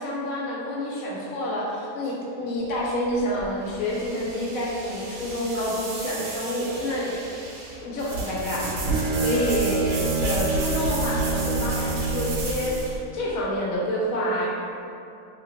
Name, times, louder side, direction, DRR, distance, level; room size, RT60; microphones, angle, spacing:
voice 1, 0.0-8.7 9.2-10.0 10.2-14.5, left 1 dB, 70° left, -4 dB, 0.9 m, -28 dB
sound 1, 2.6-13.0, right 2 dB, 90° right, 1.2 m, -32 dB
Bowed string instrument, 8.3-12.5, right 3 dB, 70° right, 0.9 m, -27 dB
2.8 x 2.8 x 2.8 m, 2.6 s
omnidirectional pair, 1.8 m